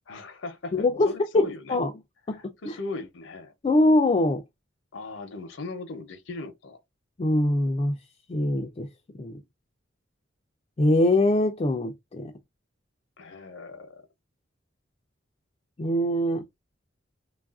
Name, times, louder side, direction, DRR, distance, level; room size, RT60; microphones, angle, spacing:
voice 1, 0.1-1.8 2.3-3.5 4.9-6.8 13.2-14.0, left 3 dB, 75° left, 0.6 m, -38 dB
voice 2, 0.7-1.9 2.3-2.4 2.6-2.8 3.6-4.4 7.2-8.0 8.3-8.9 9.2-9.4 10.8-12.3 15.8-16.4, left 1 dB, 30° left, 0.3 m, -23 dB
3.3 x 2.4 x 2.3 m
head